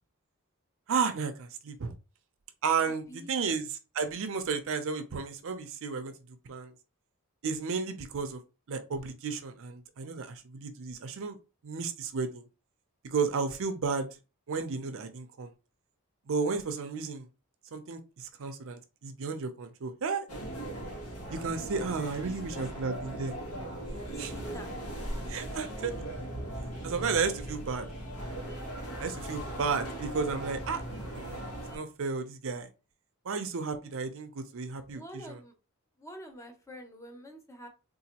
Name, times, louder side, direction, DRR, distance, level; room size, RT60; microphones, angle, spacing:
voice 1, 0.9-1.9 2.6-6.1 6.5-6.7 7.4-8.4 8.7-11.4 11.6-12.5 13.0-14.1 14.5-15.5 16.3-17.3 17.7-20.3 21.3-23.4 24.2-24.3 25.3-26.0 26.8-27.9 29.0-30.8 31.1-32.7 33.2-35.4, right 5 dB, 65° right, 0.5 m, -33 dB
voice 2, 2.8-3.4 21.6-21.9 22.2-22.6 24.1-24.7 34.9-35.5 36.0-37.7, equal, 15° left, 0.6 m, -47 dB
sound 1, 20.3-31.8, right 1 dB, 75° left, 1.3 m, -39 dB
3.8 x 2.5 x 2.8 m
head